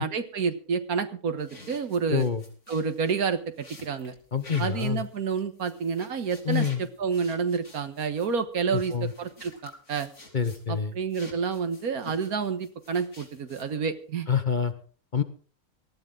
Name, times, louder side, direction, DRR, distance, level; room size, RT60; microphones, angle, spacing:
voice 1, 0.0-2.3 2.7-4.1 4.6-10.1 10.7-14.3, right 5 dB, 75° right, 9 dB, 1.7 m, -29 dB
sound 1, 1.4-10.8 11.1-13.9, left 2 dB, 50° left, 3.9 m, -49 dB
voice 2, 2.1-2.4 4.3-5.0 6.4-6.8 8.7-9.1 10.3-10.9 14.3-14.7 15.1-15.2, left 6 dB, 35° left, 10 dB, 1.0 m, -26 dB
18.5 x 14.5 x 3.8 m, 0.39 s
omnidirectional pair, 1.6 m